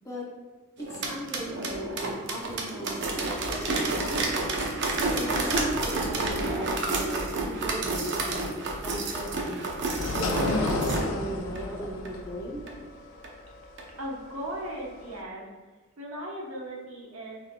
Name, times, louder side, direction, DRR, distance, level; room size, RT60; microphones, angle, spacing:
sound 1, 0.8-11.0 11.6-11.7 12.1-12.2 12.7-12.8 13.2-13.3 13.8-13.9, right 2 dB, 55° right, 0.6 m, -30 dB
voice 1, 0.9-3.3 3.5-4.2 5.1-8.5 8.8-9.6 10.2-12.6, right 1 dB, 15° left, -3 dB, 0.7 m, -37 dB
sound 2, 10.0-15.2, left 2 dB, 70° left, 0.5 m, -31 dB
voice 2, 14.0-15.5 16.0-17.5, right 1 dB, 80° right, -3 dB, 1.0 m, -37 dB
6.0 x 3.5 x 2.2 m, 1.3 s
head